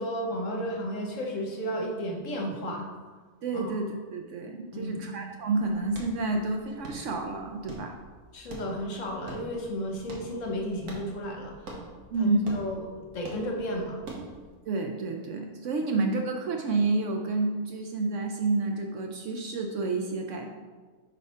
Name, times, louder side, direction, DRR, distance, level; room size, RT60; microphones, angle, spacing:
voice 1, 0.0-2.9 3.5-3.8 4.7-5.1 8.3-11.8 12.2-14.0, equal, 60° left, 0 dB, 1.3 m, -33 dB
voice 2, 3.4-8.0 12.1-12.4 14.7-20.5, right 3 dB, 65° right, 3 dB, 0.8 m, -29 dB
sound 1, 5.5-14.5, right 2 dB, 85° right, 1.6 m, -45 dB
4.7 x 4.3 x 5.4 m, 1.4 s
omnidirectional pair, 1.6 m